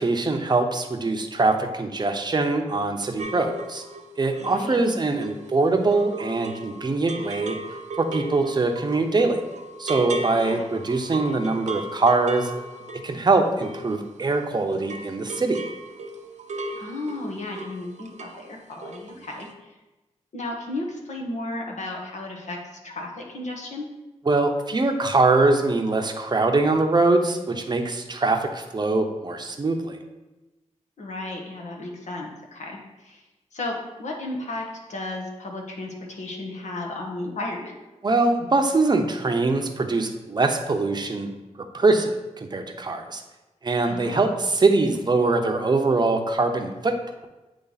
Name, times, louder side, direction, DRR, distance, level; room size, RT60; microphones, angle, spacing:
voice 1, 0.0-3.8 4.2-7.6 8.0-9.4 9.8-12.5 13.0-15.6 24.3-30.0 38.0-41.3 41.7-43.2 43.6-47.0, right 3 dB, 35° right, 4 dB, 0.7 m, -23 dB
sound 1, 3.2-14.5 14.7-18.5 18.7-19.1 19.4-19.5, right 2 dB, 70° right, 0.6 m, -36 dB
voice 2, 4.4-4.8 10.4-10.7 16.8-19.7 20.3-23.8 31.0-33.2 33.5-37.8 43.9-44.3, left 2 dB, 70° left, 0 dB, 1.2 m, -34 dB
8.8 x 3.2 x 4.1 m, 1.1 s
wide cardioid pair, 100°, 13 cm